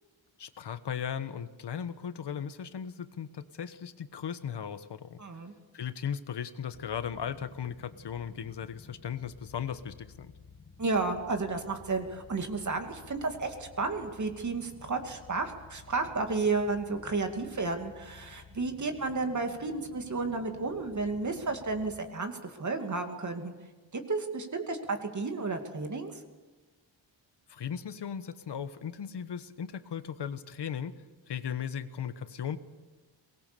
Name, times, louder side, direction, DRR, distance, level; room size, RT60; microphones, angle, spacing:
voice 1, 0.4-5.2 5.7-10.3 27.5-30.9 31.3-32.6, left 8 dB, 60° left, 11 dB, 1.4 m, -37 dB
voice 2, 5.2-5.5 10.8-23.5 23.9-26.2, right 3 dB, 40° right, 5 dB, 2.6 m, -32 dB
sound 1, 6.7-22.0, left 5 dB, 30° left, 1.8 m, -54 dB
23.0 x 20.0 x 6.9 m, 1.3 s
wide cardioid pair, 140°, 47 cm